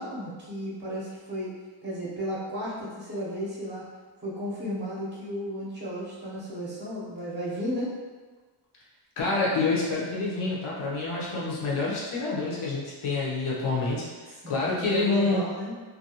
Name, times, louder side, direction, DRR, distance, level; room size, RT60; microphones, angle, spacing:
voice 1, 0.0-1.5 1.8-3.8 4.2-7.9 14.4-15.7, equal, 20° right, -6 dB, 0.7 m, -34 dB
voice 2, 9.2-15.4, left 3 dB, 75° left, -5 dB, 0.8 m, -27 dB
2.6 x 2.3 x 2.7 m, 1.4 s
wide cardioid pair, 150°, 50 cm